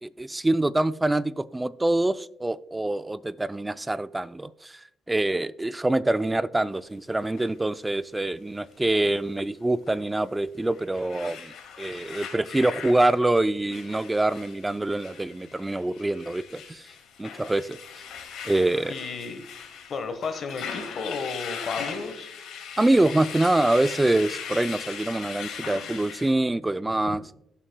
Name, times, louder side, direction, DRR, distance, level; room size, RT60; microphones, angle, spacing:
voice 1, 0.0-4.8 5.1-16.8 17.2-17.8 18.4-18.9 22.8-27.2, right 2 dB, 15° right, 14 dB, 0.4 m, -25 dB
sound 1, 7.4-7.5 9.9-10.0 10.6-26.3, left 7 dB, 80° left, 2.2 m, -39 dB
voice 2, 18.9-19.4 19.9-22.3 27.1-27.2, left 4 dB, 55° left, 9 dB, 1.1 m, -33 dB
17.5 x 7.3 x 2.2 m, 0.79 s
cardioid pair, 90°, 0 cm